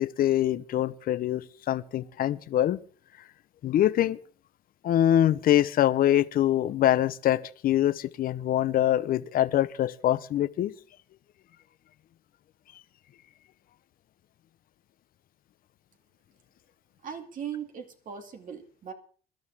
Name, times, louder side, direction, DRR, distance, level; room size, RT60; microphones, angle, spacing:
voice 1, 0.0-2.8 3.6-4.2 4.8-10.7, left 12 dB, 60° left, 0.9 m, -24 dB
voice 2, 17.0-18.9, right 8 dB, 55° right, 2.6 m, -39 dB
22.0 x 12.0 x 3.6 m
cardioid pair, 110°, 17 cm